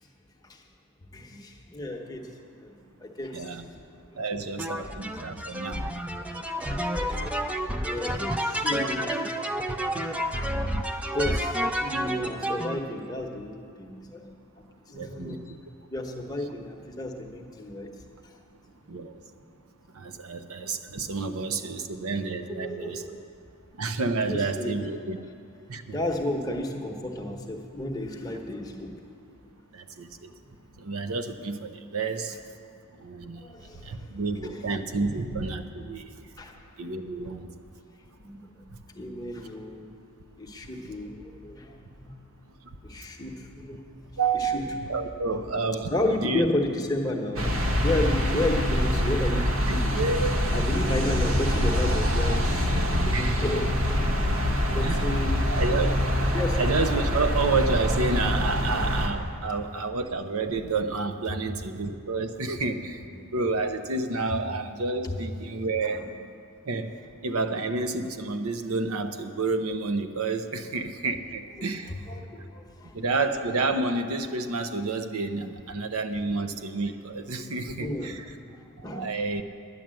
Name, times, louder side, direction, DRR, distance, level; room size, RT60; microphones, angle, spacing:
voice 1, 1.1-2.3 2.6-3.8 4.1-4.2 6.9-7.1 7.8-9.2 9.8-9.9 10.2-10.3 10.8-14.3 14.9-15.4 15.9-17.9 18.8-18.9 20.6-20.7 21.7-21.8 22.6-23.2 24.3-24.9 25.9-28.9 30.7-30.9 33.4-34.1 34.4-34.7 36.4-36.6 37.2-37.4 38.2-38.6 38.9-39.9 40.4-42.1 42.8-44.6 45.9-50.0 50.5-53.9 54.3-54.4 54.7-55.6 56.3-56.8 61.3-61.4 65.0-65.2 65.8-66.1 71.9-73.1 77.8-79.1, left 1 dB, 15° left, 1 dB, 1.0 m, -33 dB
voice 2, 3.3-3.6 4.2-5.9 14.9-15.4 18.9-19.2 19.9-23.2 23.8-25.2 25.7-26.0 29.7-30.3 30.8-32.4 33.0-33.4 33.8-36.2 36.8-37.5 44.2-44.6 44.9-45.9 46.2-46.5 50.0-50.4 53.1-53.3 54.8-55.2 55.5-63.0 63.3-66.0 66.7-66.9 67.2-71.9 72.9-78.2 78.9-79.4, right 3 dB, 85° right, 9 dB, 0.7 m, -29 dB
sound 1, 4.6-12.8, equal, 5° right, 0.4 m, -29 dB
sound 2, 47.4-59.1, equal, 65° right, 1.2 m, -25 dB
10.5 x 9.9 x 7.6 m, 2.4 s
head